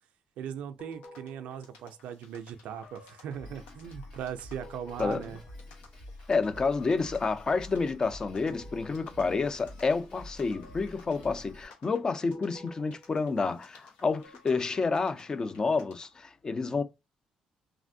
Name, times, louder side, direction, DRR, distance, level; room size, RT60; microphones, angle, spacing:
voice 1, 0.4-5.4, right 8 dB, 75° right, 0.4 m, -39 dB
sound 1, 0.8-16.1, left 2 dB, 85° left, 0.9 m, -54 dB
Drum kit, 3.3-11.7, left 1 dB, 60° left, 2.0 m, -48 dB
voice 2, 6.3-16.8, left 4 dB, 30° left, 0.5 m, -29 dB
3.3 x 2.5 x 2.6 m
cardioid pair, 80°, 2 cm